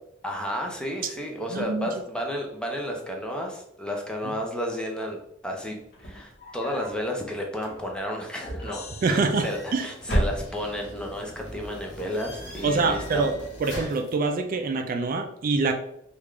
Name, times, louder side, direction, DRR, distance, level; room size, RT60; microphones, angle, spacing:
voice 1, 0.2-5.2 5.4-13.3, equal, 5° left, 0 dB, 0.5 m, -32 dB
voice 2, 1.5-1.9 4.3-4.4 9.0-9.9 12.6-13.3 13.6-15.7, right 3 dB, 45° right, 5 dB, 0.3 m, -25 dB
sound 1, 5.8-7.0 7.5-8.2 9.2-9.7 10.0-10.9, right 1 dB, 55° left, 0.9 m, -30 dB
sound 2, 8.4-10.1, equal, 35° left, 1.3 m, -40 dB
sound 3, 9.2-14.1, equal, 80° left, 1.1 m, -41 dB
3.4 x 2.4 x 3.2 m, 0.76 s
head